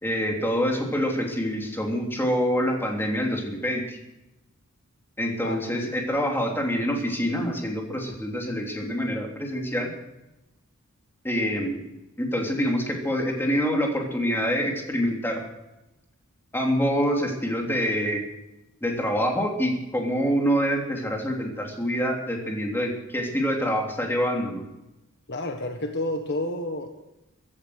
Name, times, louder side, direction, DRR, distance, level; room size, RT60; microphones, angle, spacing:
voice 1, 0.0-4.0 5.2-9.9 11.2-11.8 12.2-15.4 16.5-18.2 18.8-24.7, equal, 10° left, 0 dB, 3.2 m, -26 dB
voice 2, 5.4-5.8 25.3-26.9, left 1 dB, 50° left, 5 dB, 1.5 m, -30 dB
15.5 x 13.5 x 6.5 m, 0.94 s
head